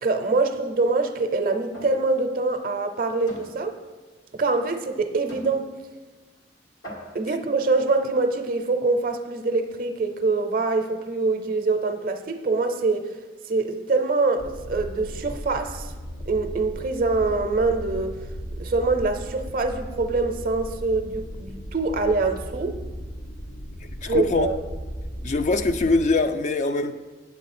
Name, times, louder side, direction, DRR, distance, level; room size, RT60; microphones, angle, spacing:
voice 1, 0.0-3.8 4.3-5.7 7.1-13.1 13.5-15.9 16.3-18.2 18.6-22.8 24.0-24.6, right 3 dB, 50° right, 0.5 m, -24 dB
sound 1, 1.7-2.0 2.4-2.6 3.3-3.5 4.4-4.5 5.3-5.5 6.4-6.5 6.8-7.3, equal, 85° left, 1.9 m, -41 dB
sound 2, 14.4-26.0, equal, 70° left, 0.8 m, -36 dB
voice 2, 24.0-24.5 25.2-26.9, left 3 dB, 40° left, 0.3 m, -22 dB
8.2 x 8.2 x 4.2 m
head